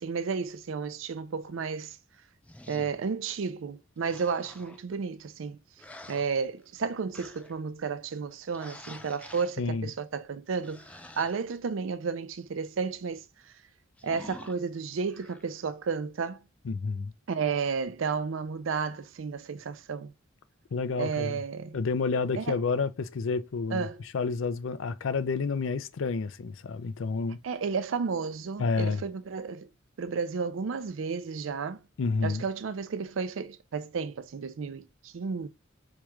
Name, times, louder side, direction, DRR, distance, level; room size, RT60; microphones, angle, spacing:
voice 1, 0.0-2.0 2.7-5.6 6.1-10.9 11.2-13.5 14.0-16.5 17.3-20.1 21.0-21.8 22.4-22.6 23.7-24.0 27.4-29.7 30.0-31.8 32.2-35.5, right 5 dB, 75° right, 0.4 m, -32 dB
sound 1, 2.4-3.0 4.0-4.8 5.8-6.8 7.1-7.6 8.5-9.6 10.6-11.3 14.0-14.6 15.0-15.4, left 1 dB, 5° left, 0.4 m, -48 dB
voice 2, 9.6-9.9 16.7-17.1 20.7-21.4 21.7-23.9 24.1-27.4 28.6-29.0 32.0-32.4, left 4 dB, 75° left, 0.4 m, -29 dB
4.6 x 2.4 x 3.0 m
head